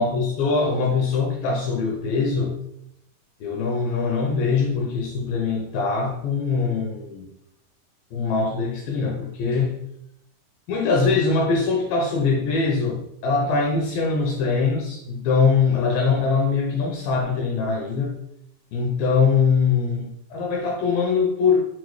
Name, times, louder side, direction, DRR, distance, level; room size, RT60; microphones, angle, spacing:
voice 1, 0.0-2.6 3.4-7.3 8.1-9.8 10.7-18.1 18.7-21.7, left 4 dB, 80° left, 0 dB, 2.2 m, -22 dB
6.0 x 2.1 x 3.1 m, 0.75 s
omnidirectional pair, 4.4 m